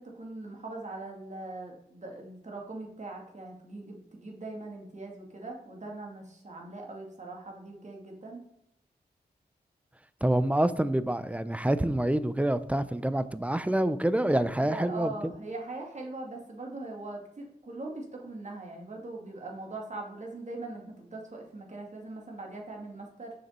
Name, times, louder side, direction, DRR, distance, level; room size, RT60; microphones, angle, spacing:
voice 1, 0.0-8.4 14.5-23.3, right 2 dB, 45° right, 2.2 m, -41 dB
voice 2, 10.2-15.3, right 1 dB, 10° right, 0.5 m, -27 dB
6.7 x 6.4 x 4.3 m
wide cardioid pair, 85°, 17 cm